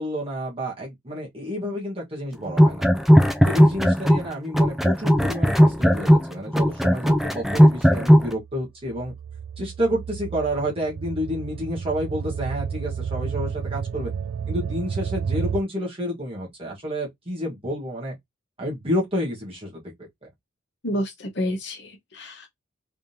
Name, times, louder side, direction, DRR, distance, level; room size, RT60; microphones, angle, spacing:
voice 1, 0.0-2.8 3.4-9.1 9.6-14.1 14.5-18.1 18.6-20.1, equal, 25° right, 1.4 m, -29 dB
sound 1, 2.5-4.3 4.5-8.3, equal, ahead, 0.3 m, -16 dB
sound 2, 8.1-15.6, right 7 dB, 75° right, 0.3 m, -31 dB
voice 2, 20.8-22.5, equal, 55° left, 1.1 m, -29 dB
3.5 x 3.4 x 2.8 m
head